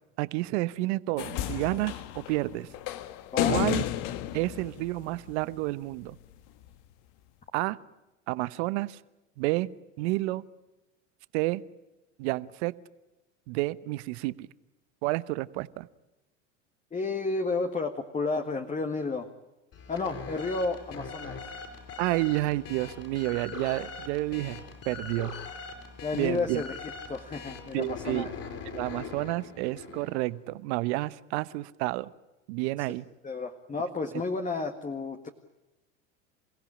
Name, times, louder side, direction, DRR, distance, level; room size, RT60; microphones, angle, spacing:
voice 1, 0.2-2.7 3.5-3.8 4.3-6.2 7.5-7.8 8.3-9.0 9.4-9.7 10.0-10.4 11.3-11.6 12.2-12.7 13.5-14.5 15.0-15.9 22.0-25.3 26.1-26.6 27.7-28.3 28.7-32.1 32.5-33.0, right 19 dB, 65° right, 16 dB, 1.1 m, -30 dB
sound 1, 1.2-5.5 6.7-6.8, left 12 dB, 60° left, 1.5 m, -32 dB
voice 2, 3.3-3.7 16.9-19.3 19.9-21.4 26.0-26.8 27.1-28.3 32.8-32.9 33.2-35.3, left 3 dB, 20° left, 5 dB, 1.8 m, -31 dB
sound 2, 19.7-30.3, left 5 dB, 45° left, 5.7 m, -42 dB
28.5 x 16.0 x 10.0 m, 1.1 s
hypercardioid pair, 95°, 36 cm